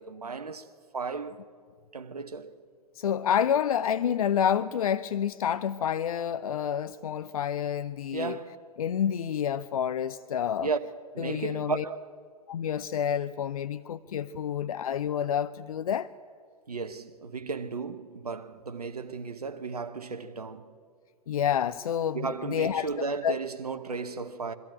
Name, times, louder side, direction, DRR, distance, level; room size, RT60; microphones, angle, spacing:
voice 1, 0.0-1.4 1.9-2.6 8.1-8.6 10.6-10.8 11.1-12.0 16.7-20.7 22.1-24.5, right 4 dB, 85° right, 1.0 m, -34 dB
voice 2, 3.0-8.4 8.8-10.7 11.2-11.8 12.5-16.1 21.3-22.9 23.2-23.4, left 9 dB, 70° left, 0.5 m, -28 dB
22.0 x 13.5 x 9.0 m
figure-of-eight pair, 105°, 19 cm